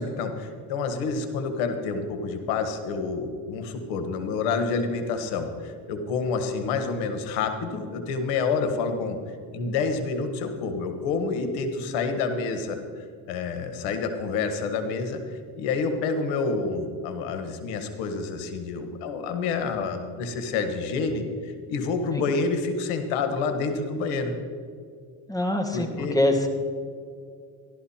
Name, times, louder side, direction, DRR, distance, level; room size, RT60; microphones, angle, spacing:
voice 1, 0.0-9.2 9.5-24.3 25.7-26.2, left 4 dB, 85° left, 7 dB, 1.5 m, -28 dB
voice 2, 25.3-26.5, left 1 dB, 10° left, 4 dB, 1.8 m, -24 dB
14.0 x 12.0 x 4.3 m, 2.2 s
supercardioid pair, 95°, 41 cm